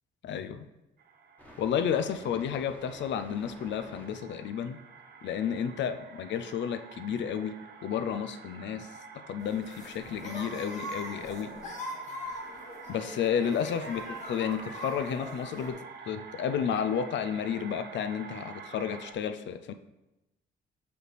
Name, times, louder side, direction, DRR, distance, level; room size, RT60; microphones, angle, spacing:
voice 1, 0.2-0.7 1.6-4.8 5.2-7.5 7.8-8.9 9.3-11.5 12.9-14.0 14.3-15.8 16.1-19.7, left 8 dB, 65° left, 9 dB, 0.5 m, -31 dB
sound 1, 1.0-19.1, right 5 dB, 55° right, 0.7 m, -48 dB
sound 2, 1.4-4.1 7.6-7.7 7.9-8.0 8.2-9.4 9.8-16.9, left 1 dB, 10° left, 1.3 m, -54 dB
sound 3, 9.4-15.7, equal, 40° left, 1.5 m, -41 dB
6.2 x 5.0 x 3.3 m, 0.97 s
cardioid pair, 90°, 20 cm